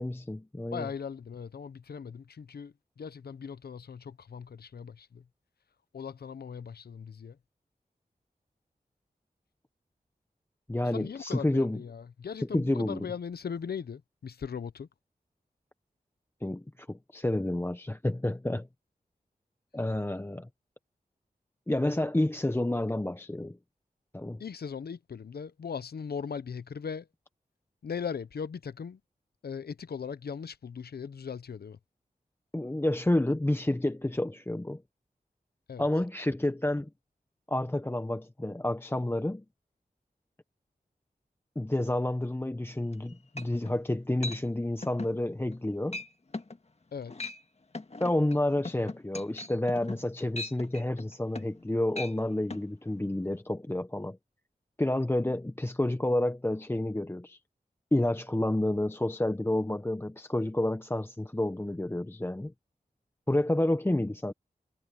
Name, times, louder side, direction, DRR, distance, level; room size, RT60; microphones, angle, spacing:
voice 1, 0.0-0.9 10.7-11.8 12.5-13.1 16.4-18.7 19.7-20.5 21.7-23.6 24.1-24.4 32.5-34.8 35.8-36.9 37.5-39.4 41.6-46.0 48.0-54.2 54.8-57.4 57.9-62.5 63.3-64.3, left 1 dB, 15° left, 0.8 m, -29 dB
voice 2, 0.7-5.2 5.9-7.4 10.9-14.9 24.4-27.1 27.8-29.0 29.4-31.8 35.7-35.9 46.9-47.3, left 6 dB, 90° left, 0.8 m, -39 dB
sound 1, 42.9-43.0 43.4-43.8 44.2-44.4 44.8-45.2 45.5-45.7 45.9-46.1 46.3-46.6 47.0-47.4 47.7-51.6 51.9-52.1 52.5-52.6, left 2 dB, 40° left, 1.7 m, -39 dB
cardioid pair, 55°, 16 cm